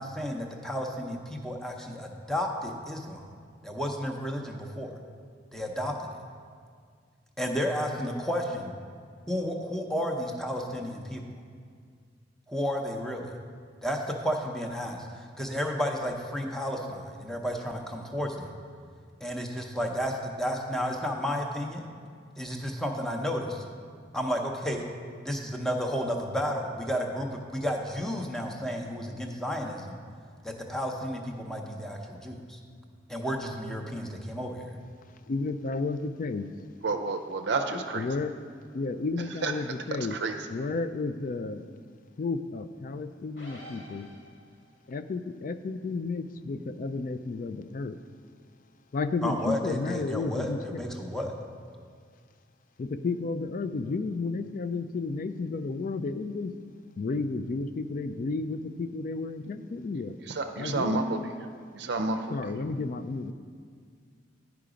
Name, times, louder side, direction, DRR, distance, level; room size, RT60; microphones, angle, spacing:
voice 1, 0.0-3.3 3.6-4.9 5.5-6.1 7.4-8.7 9.3-11.2 12.5-13.3 13.8-18.5 19.2-21.9 22.4-23.6 24.1-24.8 25.2-30.0 30.4-32.6 33.1-34.8 49.2-51.3, equal, 5° left, 1 dB, 0.7 m, -32 dB
voice 2, 35.3-36.5 37.7-38.3 38.7-40.2 40.5-41.6 42.2-44.1 44.9-48.0 48.9-50.8 52.8-56.5 56.9-60.2 60.6-61.0 62.3-63.3, left 3 dB, 45° left, 11 dB, 0.3 m, -32 dB
voice 3, 36.8-38.1 39.4-39.5 40.1-40.3 60.3-61.0 61.7-62.3, right 3 dB, 65° right, 5 dB, 0.5 m, -29 dB
sound 1, 43.4-44.7, left 1 dB, 65° left, 2.0 m, -48 dB
10.5 x 4.8 x 5.0 m, 2.1 s
head